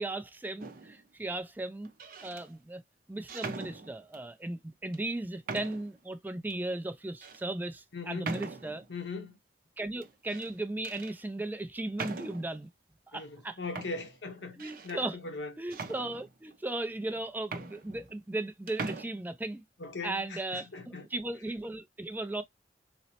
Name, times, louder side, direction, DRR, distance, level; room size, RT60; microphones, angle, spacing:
voice 1, 0.0-1.9 2.2-2.8 3.1-8.9 9.8-12.7 13.1-13.6 14.6-15.2 15.6-19.6 20.0-20.7 21.1-22.4, right 2 dB, 10° right, 0.3 m, -36 dB
sound 1, 0.6-1.0 1.9-2.5 3.3-4.3 4.9-5.0 5.5-6.0 6.5-6.6 7.2-7.4 8.2-8.9 10.0-10.5 10.8-11.2 12.0-12.6 13.4-13.5 13.8-15.0 15.7-16.6 17.1-17.2 17.4-18.4 18.7-19.0, right 3 dB, 55° right, 0.7 m, -41 dB
voice 2, 7.9-8.3 8.9-9.4 13.1-15.5 19.8-21.1, left 3 dB, 90° left, 0.8 m, -40 dB
4.0 x 2.0 x 2.8 m
head